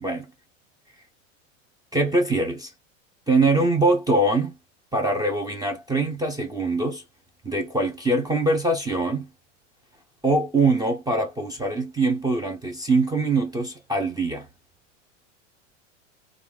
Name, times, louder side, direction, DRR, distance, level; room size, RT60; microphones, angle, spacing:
voice 1, 1.9-2.7 3.3-4.6 4.9-7.0 7.4-9.3 10.2-14.5, right 2 dB, 10° right, 0.6 m, -23 dB
3.3 x 2.4 x 2.2 m
hypercardioid pair, 100°, 38 cm